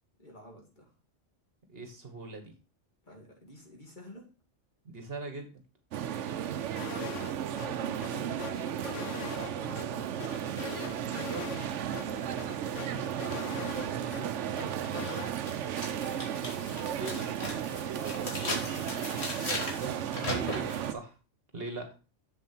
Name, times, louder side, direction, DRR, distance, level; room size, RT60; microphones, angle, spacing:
voice 1, 0.2-0.9 3.0-4.3 7.6-10.8 13.8-14.9 18.2-18.9, right 1 dB, 40° left, -1 dB, 2.6 m, -49 dB
voice 2, 1.7-2.5 4.8-5.6 11.2-11.5 16.9-17.3 19.6-21.2 21.5-21.9, right 3 dB, 50° right, 5 dB, 1.6 m, -41 dB
sound 1, 5.9-20.9, right 9 dB, 75° right, 1.0 m, -34 dB
sound 2, 6.8-7.3 7.6-7.7 8.0-9.8 10.2-11.7 11.9-12.0 12.4-14.2 14.6-15.3, left 9 dB, 80° left, 1.0 m, -42 dB
sound 3, 14.8-14.9 15.4-20.9, left 1 dB, 60° left, 2.7 m, -38 dB
7.3 x 7.2 x 4.4 m, 0.32 s
omnidirectional pair, 1.3 m